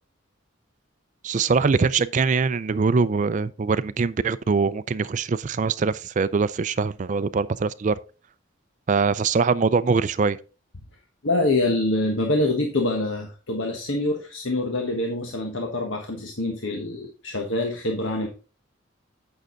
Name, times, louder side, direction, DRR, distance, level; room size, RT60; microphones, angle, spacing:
voice 1, 1.2-7.9 8.9-10.4, right 4 dB, 40° right, 0.4 m, -23 dB
voice 2, 11.2-18.3, left 2 dB, 75° left, 1.3 m, -25 dB
9.0 x 6.3 x 3.9 m
head